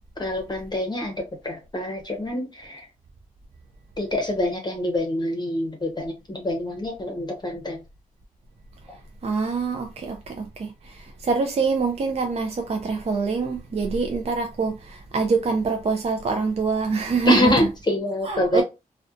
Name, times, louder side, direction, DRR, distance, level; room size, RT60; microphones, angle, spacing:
voice 1, 0.2-2.8 4.0-7.8 17.3-18.6, left 1 dB, 30° left, 0.7 m, -25 dB
voice 2, 9.2-17.7 18.2-18.6, right 4 dB, 45° right, 0.4 m, -25 dB
2.4 x 2.2 x 2.4 m
cardioid pair, 55°, 15 cm